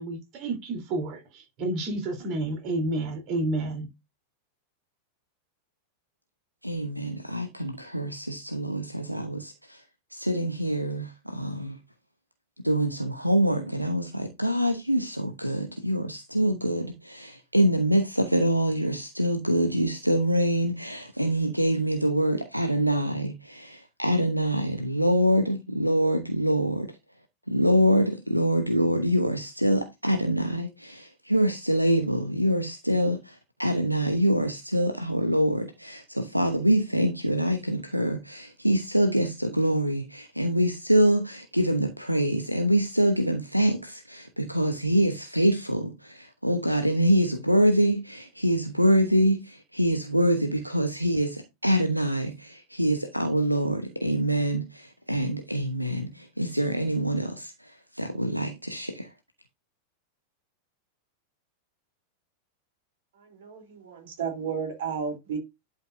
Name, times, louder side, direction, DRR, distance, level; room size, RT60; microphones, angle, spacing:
voice 1, 0.0-3.9, right 2 dB, 40° right, 3.5 m, -30 dB
voice 2, 6.6-9.8 10.1-11.8 12.6-27.0 27.5-59.1, equal, 90° right, 1.0 m, -25 dB
voice 3, 63.4-65.4, right 6 dB, 60° right, 3.3 m, -32 dB
11.5 x 5.6 x 2.6 m
figure-of-eight pair, 90°, 0 cm